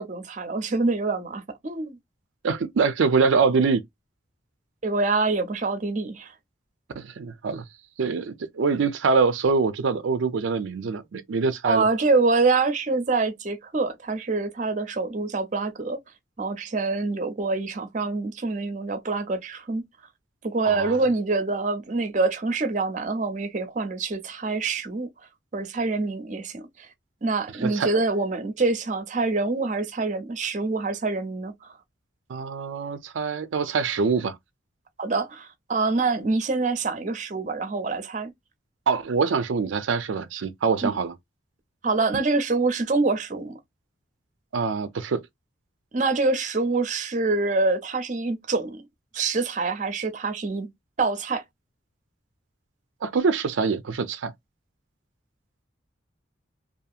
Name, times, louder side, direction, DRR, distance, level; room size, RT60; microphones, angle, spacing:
voice 1, 0.0-2.0 4.8-6.3 11.6-16.0 16.4-19.8 20.4-25.1 25.5-26.9 27.2-31.7 35.0-38.3 40.8-41.0 41.8-43.6 45.9-48.8 49.1-50.7 51.0-51.4, right 3 dB, 40° right, 0.6 m, -25 dB
voice 2, 2.4-3.8 7.0-7.6 8.0-11.8 20.6-21.0 27.6-27.9 32.3-34.4 38.9-41.2 44.5-45.2 53.0-54.3, right 5 dB, 90° right, 0.4 m, -24 dB
2.7 x 2.4 x 2.3 m
head